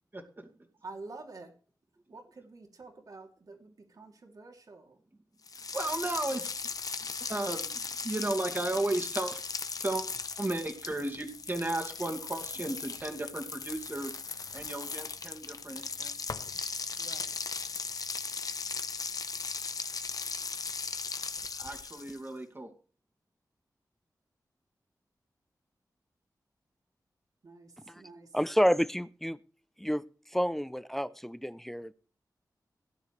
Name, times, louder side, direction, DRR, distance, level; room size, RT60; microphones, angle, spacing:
voice 1, 0.1-0.5 5.7-6.5 7.0-9.4 9.7-10.1 10.4-14.2 14.5-16.1 21.6-22.7, right 2 dB, 30° right, 3 dB, 2.4 m, -34 dB
voice 2, 0.8-1.5 2.1-5.0 17.0-17.6 27.4-28.3, right 3 dB, 60° right, 2 dB, 3.2 m, -48 dB
sound 1, 5.5-22.3, left 5 dB, 60° left, 1.0 m, -38 dB
voice 3, 28.3-29.4 29.8-30.0 30.3-31.9, equal, 5° left, 15 dB, 0.6 m, -29 dB
18.0 x 9.9 x 3.4 m, 0.39 s
wide cardioid pair, 95°, 7 cm